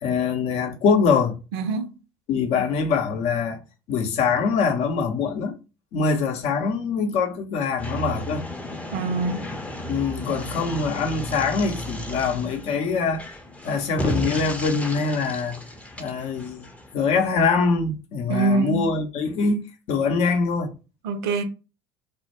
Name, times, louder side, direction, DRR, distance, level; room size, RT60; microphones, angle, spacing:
voice 1, 0.0-1.4 2.3-3.6 3.9-5.6 5.9-8.5 9.9-13.3 13.6-15.6 16.0-16.6 16.9-20.7, left 5 dB, 55° left, 0.6 m, -23 dB
voice 2, 1.5-2.0 8.9-9.4 18.3-18.9 21.0-21.4, right 3 dB, 70° right, 0.5 m, -24 dB
Demolition excavator with wrecking ball, 7.8-16.9, equal, 10° left, 0.5 m, -33 dB
2.1 x 2.0 x 2.9 m
hypercardioid pair, 65°, 13 cm